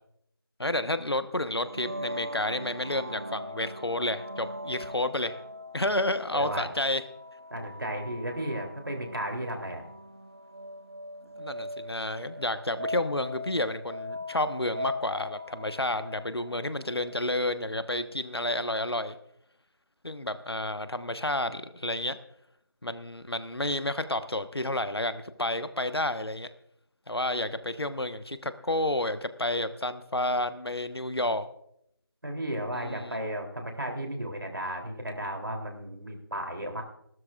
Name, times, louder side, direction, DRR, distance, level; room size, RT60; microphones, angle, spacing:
voice 1, 0.6-5.4 5.7-7.0 11.4-19.2 20.0-22.2 22.8-26.5 27.1-31.5 32.7-33.2, left 1 dB, 80° left, 11 dB, 1.2 m, -30 dB
sound 1, 1.6-17.2, left 1 dB, 40° right, 1.3 m, -40 dB
voice 2, 6.3-6.7 7.5-9.8 32.2-36.8, right 1 dB, 60° right, 2 dB, 3.4 m, -34 dB
29.0 x 13.0 x 2.5 m, 0.74 s
figure-of-eight pair, 170°, 13 cm